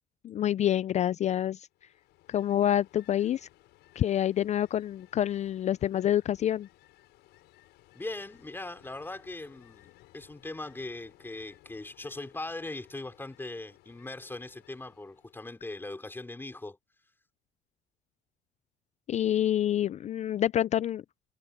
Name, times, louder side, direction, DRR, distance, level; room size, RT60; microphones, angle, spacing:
voice 1, 0.2-1.7 2.3-3.5 4.0-6.7 19.1-21.0, left 11 dB, 45° left, 0.4 m, -27 dB
Ocean, 1.7-15.8, left 17 dB, 85° left, 7.0 m, -60 dB
voice 2, 7.9-16.8, left 2 dB, 10° left, 4.8 m, -40 dB
cardioid pair, 110°, 17 cm